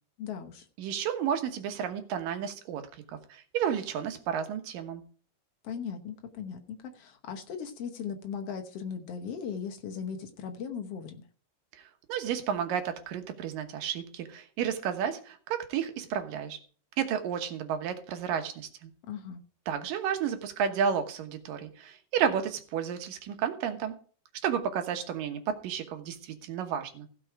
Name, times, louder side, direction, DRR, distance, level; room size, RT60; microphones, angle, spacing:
voice 1, 0.2-0.6 5.6-11.3 19.0-19.4, left 7 dB, 65° left, 5 dB, 1.6 m, -38 dB
voice 2, 0.8-5.0 11.7-16.6 17.0-18.9 19.7-23.9 24.4-27.1, right 8 dB, 80° right, 7 dB, 2.9 m, -32 dB
16.0 x 6.2 x 4.8 m, 0.42 s
omnidirectional pair, 3.9 m